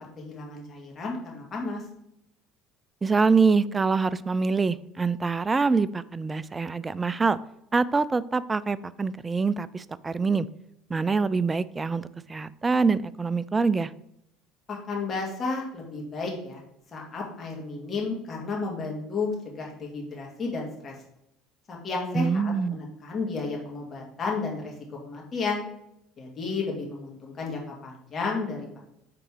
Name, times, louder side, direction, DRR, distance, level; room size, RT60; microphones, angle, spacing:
voice 1, 0.2-1.8 14.7-16.6 16.9-20.9 21.7-24.7 25.0-25.6 26.2-28.8, left 4 dB, 35° left, -2 dB, 2.2 m, -32 dB
voice 2, 3.0-7.4 7.7-10.5 10.9-13.9 22.1-22.8, right 4 dB, 20° right, 17 dB, 0.3 m, -25 dB
5.9 x 3.9 x 4.8 m, 0.79 s
hypercardioid pair, 70°, 0 cm